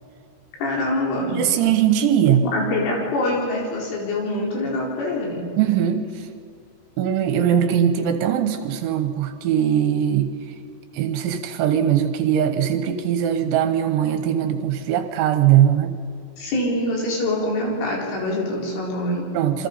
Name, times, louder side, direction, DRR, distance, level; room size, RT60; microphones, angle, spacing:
voice 1, 0.6-1.4 2.5-5.4 16.4-19.3, left 1 dB, 85° left, -2 dB, 7.1 m, -24 dB
voice 2, 1.3-2.5 5.6-6.3 7.0-10.3 10.9-16.0 19.3-19.7, right 10 dB, 80° right, 8 dB, 3.2 m, -20 dB
28.0 x 24.0 x 5.6 m, 2.3 s
omnidirectional pair, 5.6 m